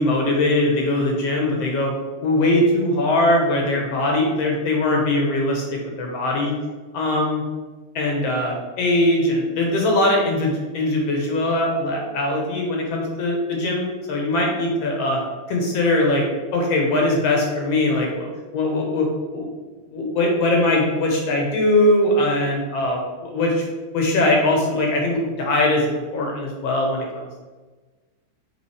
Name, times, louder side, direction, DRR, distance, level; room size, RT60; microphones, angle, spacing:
voice 1, 0.0-1.9 2.2-6.5 6.9-7.4 8.0-15.2 15.5-16.2 16.5-18.3 18.5-19.1 19.3-19.5 19.9-23.6 23.9-27.5, left 1 dB, 60° left, 0 dB, 2.0 m, -21 dB
7.1 x 3.9 x 4.8 m, 1.3 s
omnidirectional pair, 3.6 m